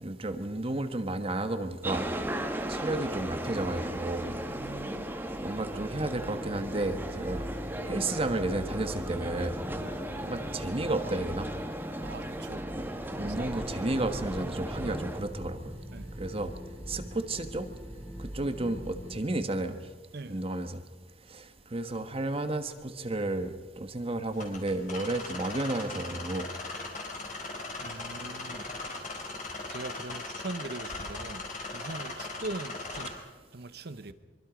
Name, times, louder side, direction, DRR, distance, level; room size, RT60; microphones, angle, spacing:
voice 1, 0.0-2.0 2.7-4.3 5.4-7.4 7.9-9.6 10.2-11.5 12.7-12.8 13.1-15.6 16.2-16.5 16.9-17.7 18.3-19.8 20.3-20.8 21.3-21.4 21.7-26.5, right 2 dB, 35° right, 1.3 m, -32 dB
sound 1, 1.8-15.2, right 1 dB, 10° right, 1.5 m, -36 dB
voice 2, 4.2-5.1 9.8-9.9 12.0-12.7 13.2-13.5 15.9-16.1 20.1-20.4 27.8-28.6 29.7-31.4 31.7-33.1 33.5-34.1, right 2 dB, 60° right, 1.0 m, -41 dB
sound 2, 4.6-19.1, equal, 15° left, 3.2 m, -42 dB
sound 3, 24.3-33.1, left 3 dB, 45° left, 4.8 m, -39 dB
25.0 x 24.0 x 5.2 m
head